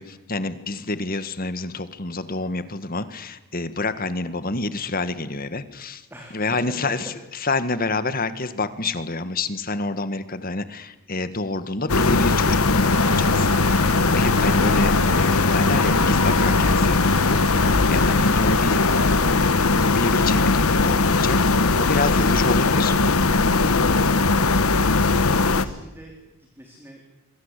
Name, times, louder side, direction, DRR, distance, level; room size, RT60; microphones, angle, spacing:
voice 1, 0.0-6.0 6.3-7.1 7.4-18.8 19.2-19.5 19.8-21.4 21.8-22.9, left 3 dB, 40° left, 12 dB, 1.7 m, -28 dB
voice 2, 6.1-6.7 22.2-22.8 24.0-27.0, equal, 10° right, 1 dB, 3.8 m, -43 dB
sound 1, 11.9-25.7, left 3 dB, 75° left, 1.3 m, -19 dB
Toilet flush, 12.8-20.3, right 2 dB, 35° right, 5.3 m, -36 dB
28.0 x 23.5 x 8.4 m, 0.99 s
head